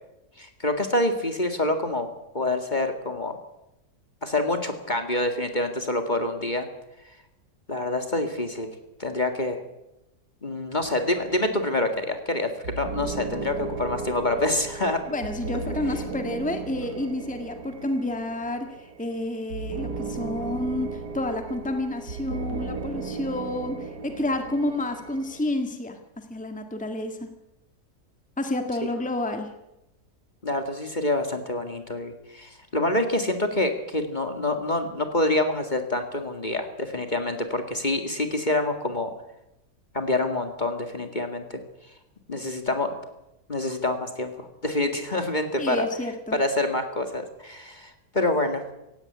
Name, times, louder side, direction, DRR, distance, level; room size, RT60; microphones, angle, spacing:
voice 1, 0.4-2.1 2.3-3.4 4.2-6.7 7.7-8.7 9.0-9.6 10.4-15.0 30.4-39.1 39.9-41.6 42.3-42.9 43.5-45.9 46.3-48.6, left 1 dB, 30° left, 6 dB, 2.1 m, -26 dB
sound 1, 10.8-25.4, right 4 dB, 75° right, 2.3 m, -36 dB
voice 2, 15.1-27.3 28.4-29.5 45.6-46.4, left 1 dB, 5° left, 6 dB, 1.7 m, -30 dB
17.0 x 16.5 x 9.7 m, 0.90 s
omnidirectional pair, 1.7 m